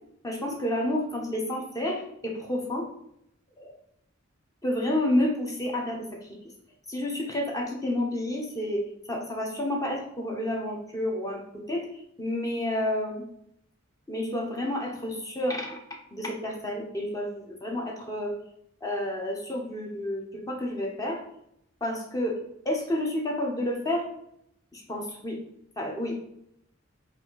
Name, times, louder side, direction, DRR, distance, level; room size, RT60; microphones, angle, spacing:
voice 1, 0.2-2.9 3.6-3.7 4.6-6.3 6.9-13.2 14.1-15.8 16.1-18.3 18.8-21.2 21.8-22.4 22.6-24.1 24.7-25.4 25.8-26.2, left 1 dB, 15° left, 0 dB, 0.8 m, -30 dB
4.2 x 2.6 x 4.4 m, 0.75 s
head